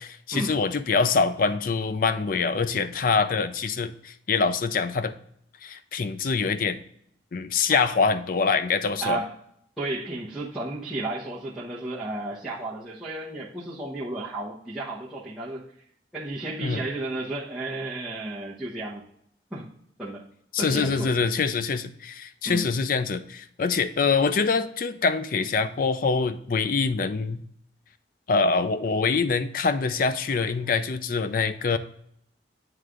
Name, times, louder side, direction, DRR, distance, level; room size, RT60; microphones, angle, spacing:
voice 1, 0.0-5.1 5.6-6.8 7.3-9.2 16.6-16.8 20.5-27.4 28.3-31.8, left 4 dB, 50° left, 11 dB, 0.4 m, -25 dB
voice 2, 9.0-9.3 9.8-15.7 16.1-19.0 19.5-19.7 20.0-20.3 20.6-21.1 22.4-22.6, right 2 dB, 5° right, -9 dB, 0.9 m, -33 dB
9.2 x 3.2 x 3.7 m, 0.69 s
head